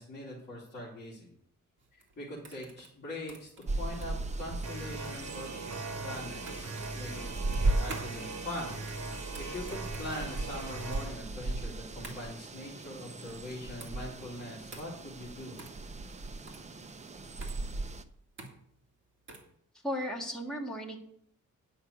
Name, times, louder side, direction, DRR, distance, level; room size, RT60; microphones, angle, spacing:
voice 1, 0.0-1.3 1.9-3.5 3.8-5.5 6.0-6.7 6.9-8.8 9.1-15.6, left 1 dB, 35° left, -7 dB, 3.0 m, -42 dB
sound 1, 1.8-19.6, right 3 dB, 40° right, 2.3 m, -50 dB
sound 2, 3.7-18.0, right 2 dB, 25° right, 0.6 m, -37 dB
sound 3, 4.6-11.1, right 3 dB, 60° right, 5.5 m, -40 dB
voice 2, 19.8-21.0, equal, ahead, -2 dB, 1.8 m, -35 dB
9.8 x 5.8 x 8.3 m, 0.69 s
wide cardioid pair, 175°, 31 cm